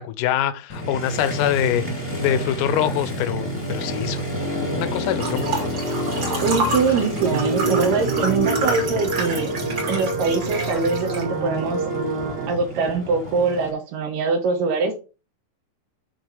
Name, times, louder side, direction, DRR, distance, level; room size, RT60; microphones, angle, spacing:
voice 1, 0.0-1.8 2.2-4.4 4.7-5.7, left 11 dB, 80° left, 2.0 m, -24 dB
Motorcycle, 0.7-13.7, equal, 15° left, 1.2 m, -30 dB
sound 1, 5.2-11.2, right 1 dB, 35° right, 2.5 m, -29 dB
voice 2, 6.4-9.6 9.9-11.8 12.5-15.0, right 4 dB, 75° right, 2.7 m, -23 dB
sound 2, 7.2-12.5, right 4 dB, 60° right, 2.7 m, -26 dB
6.9 x 4.0 x 4.5 m
omnidirectional pair, 4.0 m